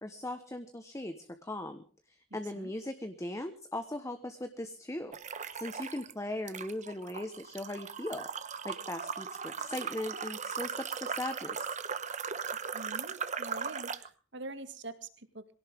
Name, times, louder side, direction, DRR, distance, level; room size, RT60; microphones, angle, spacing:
voice 1, 0.0-5.1 5.5-8.3 8.6-11.8, left 1 dB, 15° left, 7 dB, 1.2 m, -39 dB
voice 2, 2.3-2.7 12.7-15.5, right 2 dB, 65° right, 9 dB, 2.2 m, -45 dB
sound 1, 5.1-6.1 6.5-14.1, right 6 dB, 40° right, 1.1 m, -38 dB
23.0 x 17.0 x 3.6 m, 0.39 s
head